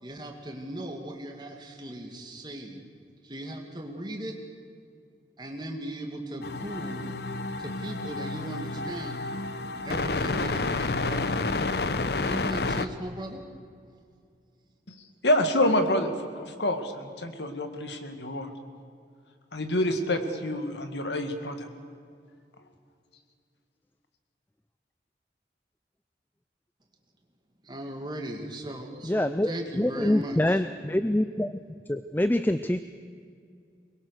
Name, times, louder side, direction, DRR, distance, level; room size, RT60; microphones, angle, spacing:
voice 1, 0.0-2.8 3.2-4.4 5.4-7.1 7.6-9.2 9.8-11.6 12.1-13.4 27.6-30.6, right 1 dB, 25° right, 3 dB, 2.3 m, -38 dB
sound 1, 6.4-12.9, left 3 dB, 65° left, 0.9 m, -30 dB
voice 2, 15.2-18.5 19.5-21.7, left 1 dB, 80° left, 7 dB, 2.1 m, -27 dB
voice 3, 29.1-31.5 31.9-32.8, left 1 dB, 10° left, 11 dB, 0.4 m, -25 dB
23.5 x 21.5 x 6.6 m, 2.3 s
head